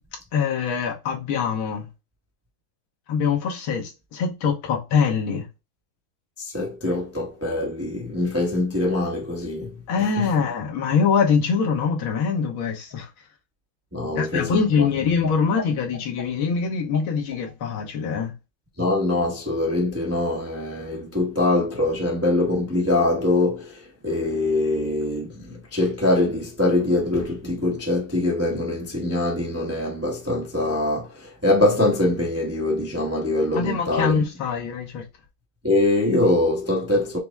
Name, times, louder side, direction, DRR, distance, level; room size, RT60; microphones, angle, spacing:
voice 1, 0.3-1.9 3.1-5.5 9.9-13.1 14.1-18.3 33.5-35.0, left 6 dB, 80° left, 1.8 m, -23 dB
voice 2, 6.4-9.7 10.2-10.3 13.9-14.9 18.8-34.2 35.6-37.2, left 2 dB, 15° right, 0.4 m, -23 dB
5.8 x 2.0 x 3.4 m
omnidirectional pair, 2.3 m